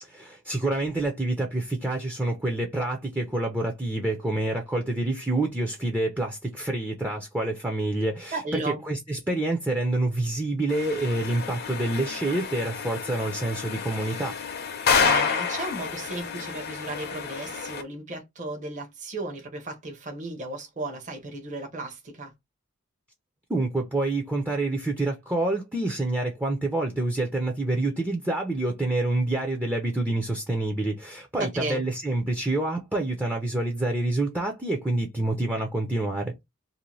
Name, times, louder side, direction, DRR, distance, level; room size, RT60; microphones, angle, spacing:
voice 1, 0.0-8.4 8.9-14.4 23.5-36.4, right 2 dB, 10° right, 0.5 m, -27 dB
voice 2, 8.3-8.8 15.0-22.3 31.4-31.8, right 2 dB, 40° right, 0.8 m, -34 dB
sound 1, 10.7-17.8, left 6 dB, 50° left, 0.6 m, -29 dB
2.6 x 2.1 x 3.0 m
head